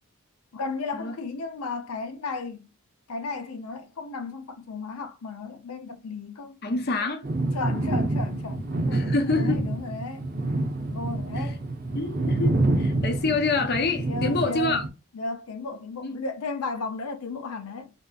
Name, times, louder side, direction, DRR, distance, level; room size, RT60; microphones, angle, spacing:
voice 1, 0.5-2.7 3.1-6.6 7.5-10.3 10.9-11.6 14.1-14.8 15.1-17.9, left 4 dB, 85° left, 0.6 m, -34 dB
voice 2, 6.6-7.3 8.9-9.7 11.3-11.5 11.9-14.8 16.0-16.2, left 3 dB, 50° left, 0.6 m, -27 dB
sound 1, 7.2-14.9, right 2 dB, 40° right, 0.6 m, -27 dB
3.5 x 2.7 x 2.3 m
head